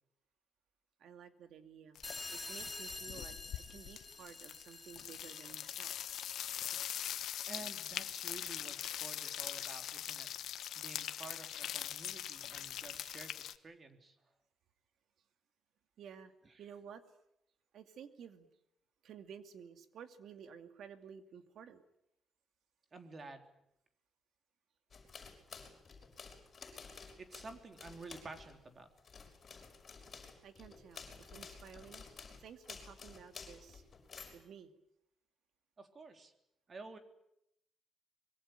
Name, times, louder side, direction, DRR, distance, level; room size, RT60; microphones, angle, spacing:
voice 1, 1.0-2.0 2.3-5.9 16.0-16.3 16.6-17.1 17.7-18.5 19.0-21.8 30.4-32.1 32.4-33.8 34.3-34.7, right 7 dB, 70° right, 8 dB, 2.6 m, -53 dB
sound 1, 2.0-2.3 2.6-13.6, left 11 dB, 75° left, 1.2 m, -42 dB
sound 2, 2.0-7.2, left 2 dB, 15° left, 2.6 m, -48 dB
voice 2, 7.5-10.3 10.7-14.2 22.9-23.5 27.2-28.9 35.8-36.3 36.7-37.0, right 3 dB, 30° right, 6 dB, 3.4 m, -51 dB
sound 3, 24.9-28.6 29.0-34.4, left 5 dB, 35° left, 6.1 m, -52 dB
24.5 x 22.5 x 9.1 m, 0.79 s
cardioid pair, 135°, 0 cm